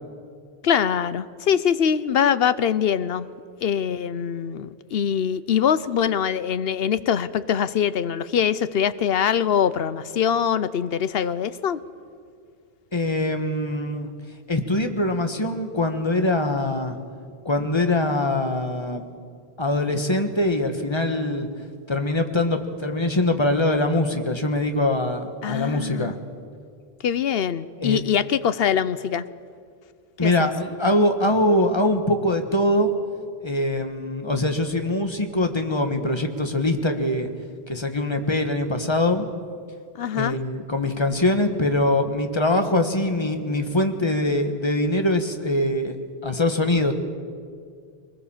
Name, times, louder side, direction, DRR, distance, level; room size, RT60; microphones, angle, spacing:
voice 1, 0.6-3.3 3.6-11.8 25.4-26.1 27.0-29.2 30.2-30.5 40.0-40.4, left 8 dB, 70° left, 15 dB, 0.9 m, -23 dB
voice 2, 12.9-14.1 14.5-17.0 17.4-19.0 19.6-21.5 21.9-26.1 27.8-28.0 30.2-32.9 33.4-37.3 37.7-39.2 40.1-46.0 46.2-46.9, left 1 dB, 25° left, 6 dB, 1.5 m, -23 dB
22.5 x 20.0 x 7.3 m, 2.2 s
omnidirectional pair, 1.1 m